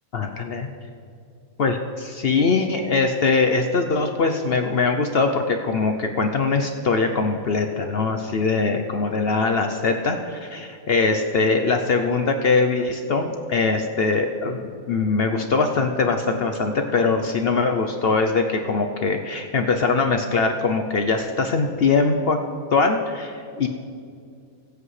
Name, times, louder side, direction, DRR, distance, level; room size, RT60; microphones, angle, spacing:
voice 1, 0.1-0.7 1.6-22.4 22.7-23.7, left 4 dB, 55° left, 5 dB, 0.7 m, -22 dB
21.5 x 8.0 x 3.2 m, 2.3 s
omnidirectional pair, 1.5 m